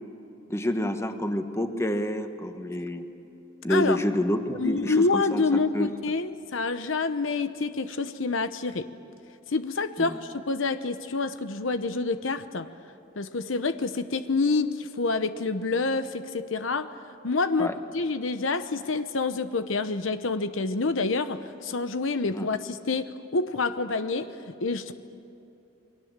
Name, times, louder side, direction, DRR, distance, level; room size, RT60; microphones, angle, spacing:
voice 1, 0.5-3.0 3.6-5.9 10.0-10.2 17.6-17.7 22.3-22.5, equal, 15° left, 7 dB, 1.3 m, -28 dB
voice 2, 4.6-8.9 9.5-12.7 13.2-16.9 17.2-24.3 24.6-24.9, left 3 dB, 75° left, 10 dB, 0.9 m, -27 dB
29.0 x 22.5 x 7.5 m, 2.7 s
head